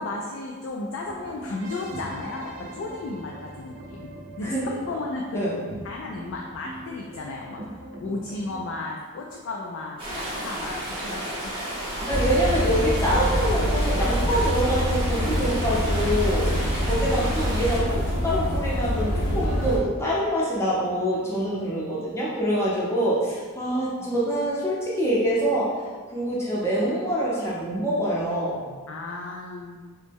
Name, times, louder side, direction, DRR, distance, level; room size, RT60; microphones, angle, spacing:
voice 1, 0.0-4.1 4.4-7.6 8.0-11.5 24.0-24.1 28.9-29.8, left 2 dB, 60° left, -1 dB, 0.3 m, -34 dB
sound 1, 1.1-8.8, right 1 dB, 60° right, 0.5 m, -41 dB
voice 2, 4.4-4.8 5.3-5.5 12.1-28.7, equal, 10° left, -7 dB, 0.5 m, -25 dB
sound 2, 10.0-17.8, right 1 dB, 25° right, 0.7 m, -32 dB
sound 3, 12.1-19.8, equal, 85° left, 0.8 m, -25 dB
2.9 x 2.1 x 3.4 m, 1.5 s
head